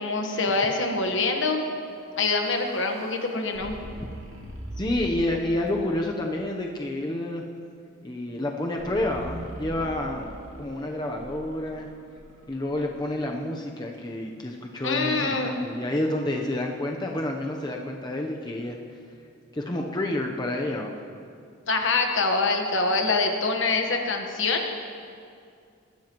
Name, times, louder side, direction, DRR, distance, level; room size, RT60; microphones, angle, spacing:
voice 1, 0.0-1.6 2.2-3.7 14.8-15.6 21.7-24.8, left 3 dB, 65° left, 3 dB, 1.3 m, -25 dB
sound 1, 1.9-5.2 5.7-6.2 8.8-12.9, right 1 dB, 85° right, 2.2 m, -42 dB
voice 2, 4.8-7.4 8.0-10.3 10.6-11.9 12.5-18.8 19.5-20.9, left 1 dB, 20° left, 1 dB, 0.8 m, -29 dB
21.0 x 12.5 x 3.0 m, 2.3 s
head